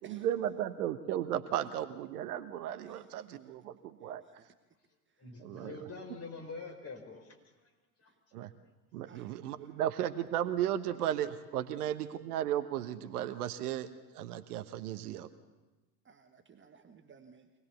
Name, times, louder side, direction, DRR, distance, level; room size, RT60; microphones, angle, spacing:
voice 1, 0.0-4.2 5.4-5.8 8.3-8.5 8.9-13.9 14.1-15.3, right 11 dB, 65° right, 10 dB, 1.3 m, -35 dB
voice 2, 2.9-3.5 4.4-4.5 5.2-5.3 8.1-8.2 9.1-9.8 11.7-11.8 16.0-17.6, right 6 dB, 25° right, 6 dB, 1.5 m, -58 dB
voice 3, 5.2-7.4 7.6-7.7 8.0-8.1, left 3 dB, 30° left, 3 dB, 4.9 m, -45 dB
24.5 x 19.0 x 7.0 m, 1.2 s
figure-of-eight pair, 75°, 49 cm